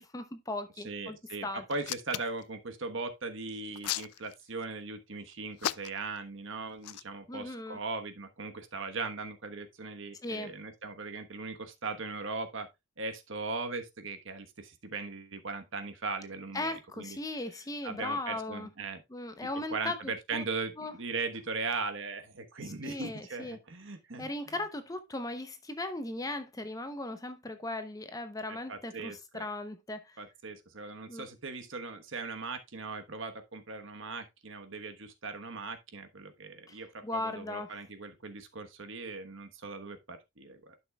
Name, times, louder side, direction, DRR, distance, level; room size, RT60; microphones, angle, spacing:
voice 1, 0.0-1.2 1.4-1.6 7.3-7.8 10.2-10.5 16.5-18.7 19.1-20.4 20.8-20.9 22.6-23.6 24.2-30.2 31.1-31.3 36.7-37.7, left 2 dB, 15° left, 0.7 m, -38 dB
voice 2, 0.8-12.7 13.0-17.2 17.8-19.0 19.7-24.3 28.5-29.4 30.2-40.7, right 3 dB, 55° right, 1.1 m, -39 dB
Hands, 1.7-2.4 3.5-4.6 5.6-6.2 6.8-7.0, left 13 dB, 90° left, 0.4 m, -35 dB
11.5 x 6.2 x 2.3 m
head